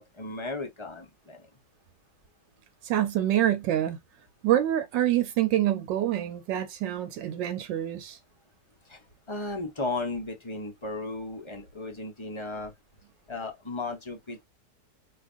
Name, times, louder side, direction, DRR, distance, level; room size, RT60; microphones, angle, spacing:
voice 1, 0.0-1.5 8.9-12.7 13.3-14.4, left 2 dB, 25° left, 0.6 m, -35 dB
voice 2, 2.8-4.0 4.4-8.2, right 12 dB, 85° right, 1.3 m, -26 dB
4.8 x 2.4 x 2.5 m
omnidirectional pair, 1.9 m